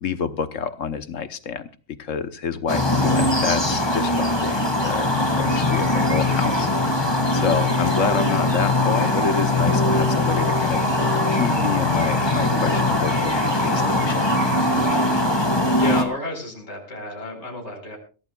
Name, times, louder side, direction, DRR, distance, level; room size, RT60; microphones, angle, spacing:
voice 1, 0.0-1.7 2.0-5.1 5.4-6.7 7.3-14.2 14.6-14.8, left 6 dB, 70° left, 11 dB, 1.3 m, -28 dB
sound 1, 2.7-16.0, left 1 dB, 20° left, 2.0 m, -21 dB
voice 2, 15.8-18.0, left 1 dB, 55° left, 1 dB, 4.6 m, -31 dB
23.0 x 16.5 x 2.3 m, 0.35 s
omnidirectional pair, 1.4 m